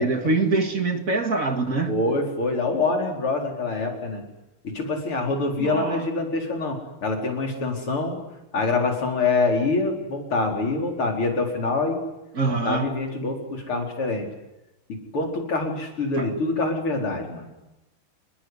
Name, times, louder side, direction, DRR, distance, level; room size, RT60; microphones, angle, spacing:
voice 1, 0.0-1.9 5.6-6.1 12.3-12.9 16.2-16.3, right 3 dB, 40° right, 6 dB, 2.4 m, -24 dB
voice 2, 1.9-4.2 4.6-8.2 8.5-12.0 12.5-14.3 14.9-17.5, left 3 dB, 85° left, 2 dB, 5.4 m, -25 dB
27.5 x 20.5 x 9.7 m, 0.95 s
omnidirectional pair, 2.3 m